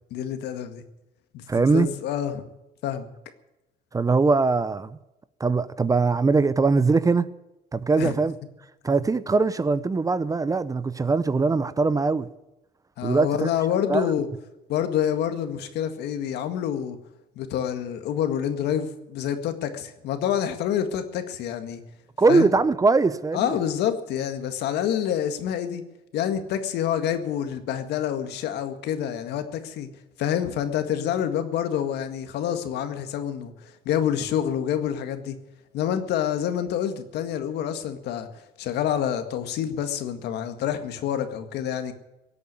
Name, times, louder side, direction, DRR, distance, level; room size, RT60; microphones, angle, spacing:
voice 1, 0.1-0.8 1.3-2.4 2.8-3.1 8.0-8.2 13.0-14.3 14.7-17.0 17.4-21.8 22.3-22.5 23.3-25.8 26.1-29.9 30.2-33.5 33.9-35.4 35.7-41.9, left 9 dB, 80° left, 1.8 m, -27 dB
voice 2, 1.5-1.9 3.9-5.0 5.4-7.3 7.7-8.3 8.8-12.3 13.0-13.5 13.9-14.1 22.2-23.6, right 4 dB, 20° right, 0.7 m, -21 dB
17.5 x 8.5 x 9.5 m
cardioid pair, 110°, 17 cm